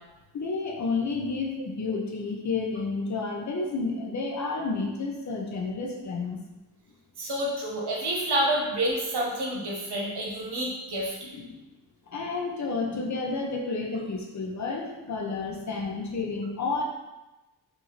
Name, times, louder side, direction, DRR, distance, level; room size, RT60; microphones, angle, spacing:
voice 1, 0.3-6.4 11.3-11.6 12.1-16.8, left 3 dB, 45° left, 1 dB, 0.6 m, -31 dB
voice 2, 7.2-11.1, right 1 dB, 75° right, -3 dB, 0.9 m, -28 dB
3.9 x 2.6 x 3.0 m, 1.1 s
wide cardioid pair, 150°, 40 cm